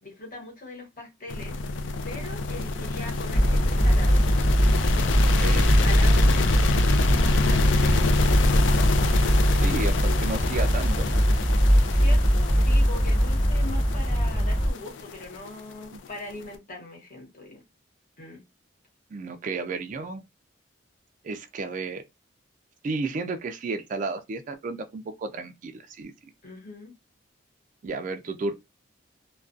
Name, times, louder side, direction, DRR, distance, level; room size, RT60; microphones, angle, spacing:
voice 1, 0.0-1.7 2.0-4.2 5.2-8.2 11.9-17.6 18.2-18.4 26.4-26.9 28.2-28.3, left 2 dB, 45° left, 1.0 m, -41 dB
sound 1, 1.3-16.4, left 3 dB, 75° left, 0.4 m, -27 dB
sound 2, 3.3-14.7, equal, 25° left, 0.5 m, -21 dB
voice 2, 5.4-6.0 9.4-11.2 15.9-16.0 19.1-20.2 21.2-22.0 22.8-26.1 27.8-28.5, right 3 dB, 40° right, 0.3 m, -33 dB
2.3 x 2.2 x 2.4 m
head